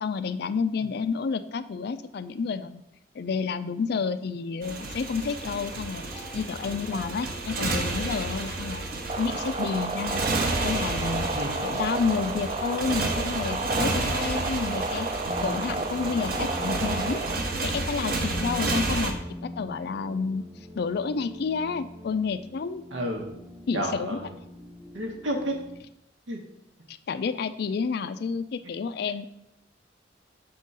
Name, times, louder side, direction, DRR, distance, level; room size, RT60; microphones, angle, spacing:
voice 1, 0.0-2.8 3.1-8.8 9.2-10.3 10.6-11.3 11.6-15.1 15.4-17.3 17.6-20.4 20.8-22.8 23.7-24.2 26.9-29.2, left 5 dB, 55° left, 13 dB, 0.4 m, -30 dB
Motorcycle, 4.6-19.1, right 2 dB, 55° right, 0.8 m, -31 dB
sound 1, 5.9-25.8, left 1 dB, 15° right, 0.8 m, -45 dB
sound 2, 9.1-17.4, right 3 dB, 30° right, 0.4 m, -32 dB
voice 2, 11.3-11.7 22.9-23.3 23.7-24.3 24.9-25.5 26.3-26.4, right 1 dB, 90° right, 3 dB, 1.1 m, -31 dB
6.1 x 3.7 x 5.4 m, 0.84 s
head